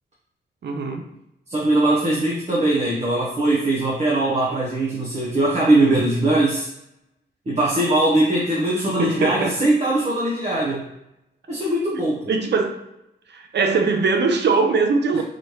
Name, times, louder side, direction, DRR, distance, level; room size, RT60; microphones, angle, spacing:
voice 1, 0.6-1.1 9.0-9.6 12.3-12.8 13.3-15.2, right 4 dB, 60° right, 0.6 m, -21 dB
voice 2, 1.5-6.7 7.5-10.8 11.5-12.3, right 2 dB, 35° right, 1.0 m, -20 dB
4.0 x 3.1 x 3.1 m
cardioid pair, 85°, 20 cm